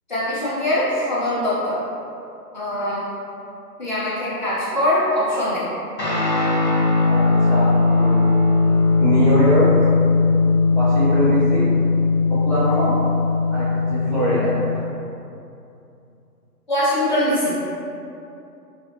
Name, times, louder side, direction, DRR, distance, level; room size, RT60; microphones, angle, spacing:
voice 1, 0.1-1.8 2.5-3.0 3.8-5.6 16.7-17.5, left 1 dB, 30° left, -10 dB, 0.7 m, -22 dB
Guitar, 6.0-14.8, left 3 dB, 75° left, 1.2 m, -18 dB
voice 2, 7.1-7.7 7.9-8.1 9.0-9.9 10.7-11.7 12.3-12.9 13.5-14.5, right 1 dB, 20° right, -16 dB, 0.5 m, -22 dB
4.1 x 2.6 x 2.6 m, 2.7 s
figure-of-eight pair, 140°, 50 cm